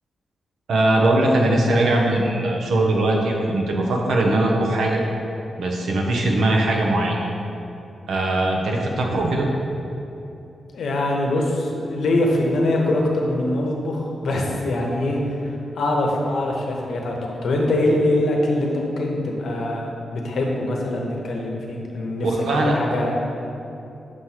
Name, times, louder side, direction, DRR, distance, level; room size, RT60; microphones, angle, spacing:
voice 1, 0.7-5.0 5.6-7.2 8.1-9.5 22.2-22.8, right 1 dB, 85° right, 0 dB, 0.8 m, -20 dB
voice 2, 10.7-17.2 17.4-22.3 22.6-23.1, left 1 dB, 75° left, 0 dB, 0.9 m, -23 dB
6.3 x 3.1 x 5.7 m, 2.8 s
wide cardioid pair, 145°, 0 cm